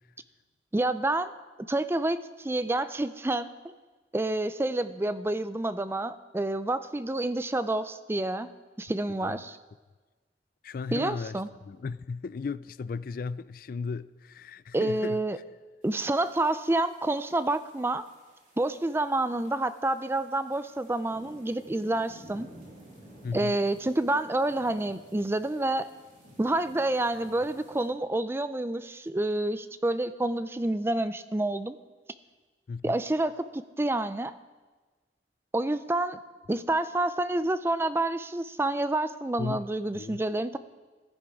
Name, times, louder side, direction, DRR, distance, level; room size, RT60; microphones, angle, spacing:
voice 1, 0.7-1.3 1.7-3.5 4.1-8.5 8.8-9.6 10.9-11.5 14.7-15.4 15.8-18.0 18.6-22.5 23.3-25.9 26.4-31.8 32.8-34.3 35.5-36.2 36.5-40.6, right 2 dB, 15° right, 0.4 m, -28 dB
voice 2, 9.1-9.5 10.6-15.2 23.2-23.6 32.7-33.0 39.4-39.7 39.9-40.2, left 4 dB, 55° left, 0.3 m, -36 dB
sound 1, 15.8-27.9, right 1 dB, 45° right, 3.2 m, -54 dB
15.5 x 11.5 x 4.8 m
head